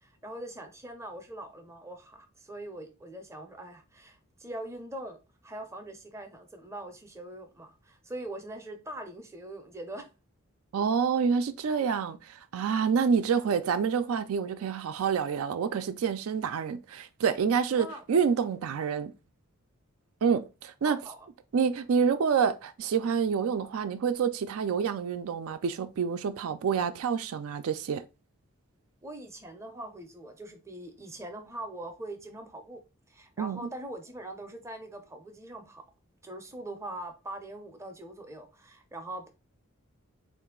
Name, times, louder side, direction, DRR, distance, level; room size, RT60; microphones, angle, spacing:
voice 1, 0.0-5.2 5.4-10.1 17.8-18.0 20.8-21.3 29.0-32.8 33.1-35.8 36.2-39.3, right 1 dB, 15° right, 0.5 m, -42 dB
voice 2, 10.7-19.1 20.2-21.0 21.5-28.0 33.4-33.6, right 6 dB, 75° right, 0.4 m, -28 dB
3.9 x 2.5 x 3.6 m
head